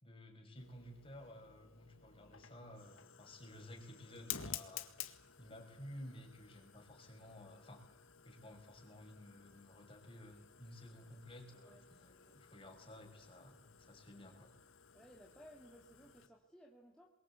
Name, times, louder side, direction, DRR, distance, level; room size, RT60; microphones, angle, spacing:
voice 1, 0.0-4.9 5.4-7.9 8.2-14.5, left 1 dB, 25° left, 3 dB, 5.4 m, -54 dB
Fire, 0.6-16.3, left 9 dB, 80° left, 1.9 m, -53 dB
voice 2, 14.9-17.1, equal, 5° left, -3 dB, 2.6 m, -59 dB
28.5 x 23.0 x 8.4 m, 1.0 s
head